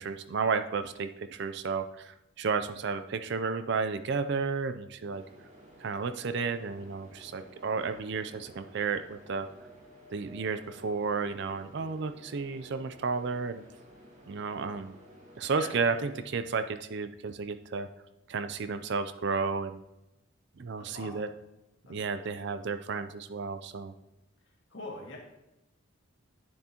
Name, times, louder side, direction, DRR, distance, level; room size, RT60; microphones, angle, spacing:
voice 1, 0.0-5.2 5.8-9.5 10.1-13.6 14.3-14.9 15.4-17.9 18.3-19.8 20.6-21.3 21.9-23.9, right 4 dB, 55° right, 10 dB, 0.4 m, -32 dB
sound 1, 5.1-16.2, equal, 35° right, 1.6 m, -54 dB
voice 2, 20.8-21.1 21.8-22.2 24.7-25.2, left 2 dB, 60° left, -2 dB, 2.0 m, -43 dB
9.6 x 7.2 x 2.9 m, 0.94 s
head